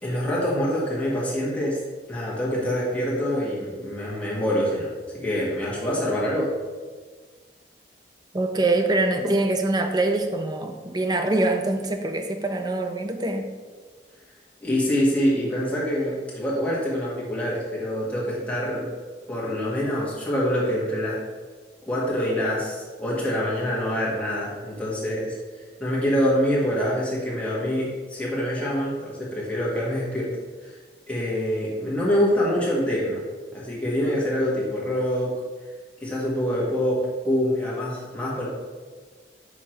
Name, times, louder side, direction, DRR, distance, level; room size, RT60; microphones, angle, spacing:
voice 1, 0.0-1.8 2.1-6.5 14.6-18.9 19.3-21.2 21.9-25.3 25.8-30.3 30.6-30.8 31.1-33.2 33.5-35.3 36.0-38.5, equal, 5° left, -7 dB, 1.5 m, -25 dB
voice 2, 8.3-13.6, right 2 dB, 20° right, 6 dB, 0.5 m, -24 dB
6.1 x 3.6 x 4.4 m, 1.4 s
head